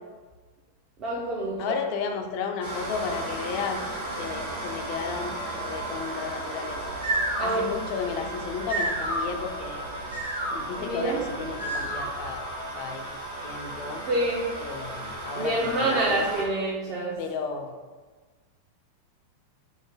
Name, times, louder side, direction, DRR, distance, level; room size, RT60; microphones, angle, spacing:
voice 1, 1.0-1.7 7.4-7.7 10.8-11.3 14.1-14.5 15.3-17.2, right 2 dB, 35° right, -5 dB, 0.6 m, -27 dB
voice 2, 1.6-3.8 4.2-6.8 7.4-9.9 10.5-13.2 13.4-14.0 14.6-16.2 17.2-17.8, left 6 dB, 45° left, 5 dB, 0.4 m, -33 dB
sound 1, 2.6-16.4, right 1 dB, 60° right, 1.0 m, -35 dB
sound 2, 6.7-12.3, right 1 dB, 80° right, 0.7 m, -32 dB
3.2 x 2.1 x 3.6 m, 1.3 s
figure-of-eight pair, 90°, 0 cm